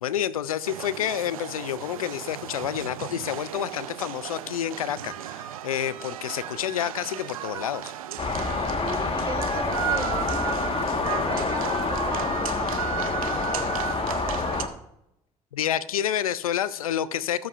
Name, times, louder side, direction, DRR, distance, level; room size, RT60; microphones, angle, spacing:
voice 1, 0.0-7.9 15.5-17.5, left 10 dB, 90° left, 18 dB, 0.4 m, -29 dB
sound 1, 0.6-14.6, right 11 dB, 85° right, 0.6 m, -35 dB
sound 2, 8.2-14.7, left 4 dB, 35° left, 1.4 m, -27 dB
voice 2, 8.8-10.9 11.2-14.6, right 3 dB, 20° right, 8 dB, 1.2 m, -38 dB
19.5 x 8.0 x 2.5 m, 0.83 s
hypercardioid pair, 50°, 18 cm